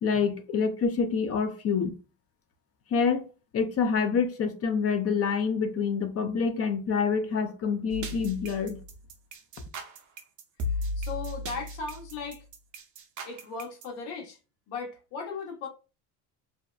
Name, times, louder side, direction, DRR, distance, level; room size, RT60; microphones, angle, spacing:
voice 1, 0.0-1.9 2.9-3.3 3.5-8.8, left 5 dB, 35° left, 0.5 m, -27 dB
sound 1, 7.9-13.8, left 1 dB, 45° right, 0.6 m, -36 dB
voice 2, 11.0-12.4 13.2-14.4 14.7-15.7, left 4 dB, 70° left, 1.1 m, -37 dB
2.7 x 2.1 x 2.3 m
supercardioid pair, 105°, 43 cm